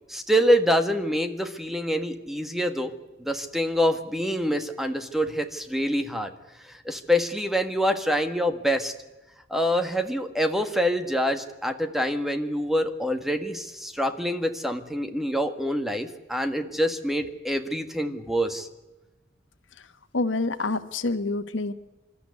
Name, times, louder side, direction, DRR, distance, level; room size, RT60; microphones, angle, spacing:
voice 1, 0.1-2.9 3.2-6.3 6.6-8.9 9.5-18.7, equal, ahead, 7 dB, 1.6 m, -26 dB
voice 2, 20.1-21.7, left 3 dB, 85° left, 10 dB, 1.4 m, -27 dB
26.5 x 13.0 x 9.7 m, 1.1 s
head